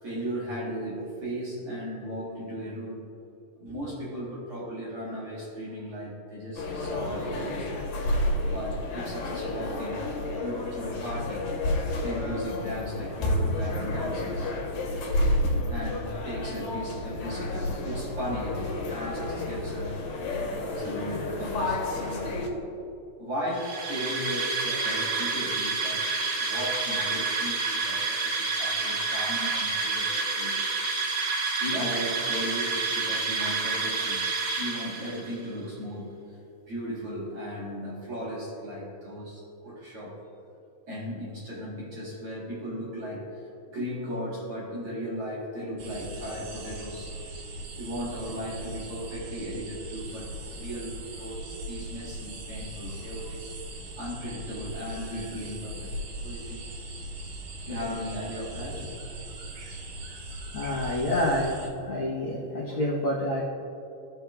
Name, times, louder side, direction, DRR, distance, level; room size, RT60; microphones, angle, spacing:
voice 1, 0.0-3.1 3.6-7.7 8.4-10.1 10.4-11.5 12.0-14.5 15.7-20.1 20.5-22.5 23.2-26.1 26.3-30.7 31.6-34.3 34.6-36.4 36.6-40.2 40.9-47.3 47.8-53.4 54.0-55.9 56.2-56.7 57.7-58.9, equal, 55° right, -7 dB, 1.9 m, -36 dB
sound 1, 6.6-22.5, left 1 dB, 85° left, 2.6 m, -30 dB
sound 2, 23.5-35.3, right 3 dB, 70° right, 2.5 m, -29 dB
sound 3, 45.8-61.7, right 1 dB, 90° right, 2.7 m, -39 dB
voice 2, 60.5-61.6 61.8-63.4, left 1 dB, 65° left, -7 dB, 1.3 m, -27 dB
15.5 x 5.3 x 2.3 m, 2.7 s
omnidirectional pair, 3.9 m